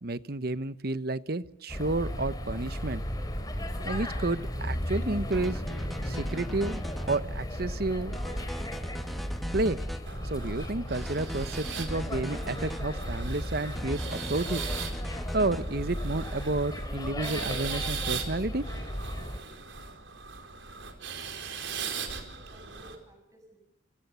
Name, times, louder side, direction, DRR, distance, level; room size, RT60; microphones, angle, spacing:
voice 1, 0.0-3.0 3.8-5.6 6.0-8.2 9.5-9.8 10.2-14.6 15.3-18.6, right 2 dB, 55° right, 14 dB, 1.0 m, -31 dB
sound 1, 1.7-19.4, equal, 20° left, 4.5 m, -35 dB
sound 2, 5.3-7.2 8.1-10.0 10.9-12.8 13.7-15.6, equal, ahead, 1.4 m, -39 dB
sound 3, 10.0-23.0, right 6 dB, 80° right, 4.7 m, -39 dB
voice 2, 21.9-23.6, right 1 dB, 15° right, 5 dB, 7.7 m, -54 dB
29.5 x 28.5 x 7.0 m, 0.78 s
head